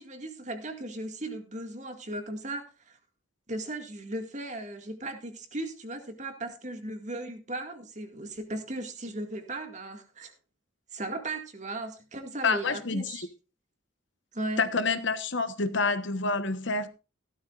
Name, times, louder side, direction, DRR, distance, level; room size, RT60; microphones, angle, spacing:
voice 1, 0.0-3.0 3.5-10.3 10.9-13.3 14.3-14.6, right 1 dB, 35° right, 2.0 m, -37 dB
voice 2, 12.4-13.3 14.6-16.9, left 4 dB, 65° left, 1.2 m, -28 dB
16.0 x 12.5 x 2.5 m
head